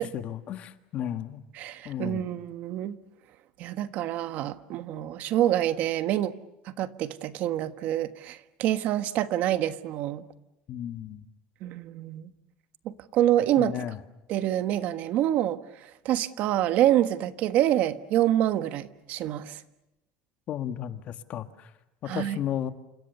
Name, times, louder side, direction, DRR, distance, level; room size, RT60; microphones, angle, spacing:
voice 1, 0.0-1.4 1.9-2.3 10.7-11.2 13.6-14.0 20.5-21.5 22.1-22.7, left 10 dB, 40° left, 9 dB, 1.7 m, -33 dB
voice 2, 1.5-3.0 3.6-6.4 6.7-10.2 11.6-12.2 12.8-13.8 14.3-15.6 16.0-19.6 22.0-22.4, right 12 dB, 55° right, 11 dB, 1.4 m, -26 dB
29.5 x 27.0 x 6.8 m, 0.97 s
cardioid pair, 155°, 3 cm